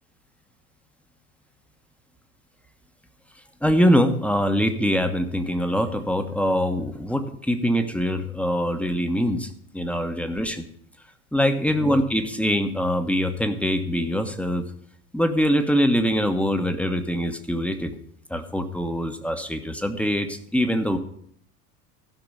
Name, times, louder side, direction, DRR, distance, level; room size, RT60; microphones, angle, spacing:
voice 1, 3.6-10.7 11.3-14.6 15.1-17.9 18.3-21.0, equal, 5° left, 7 dB, 1.2 m, -23 dB
15.5 x 5.9 x 5.4 m, 0.67 s
hypercardioid pair, 80°, 45 cm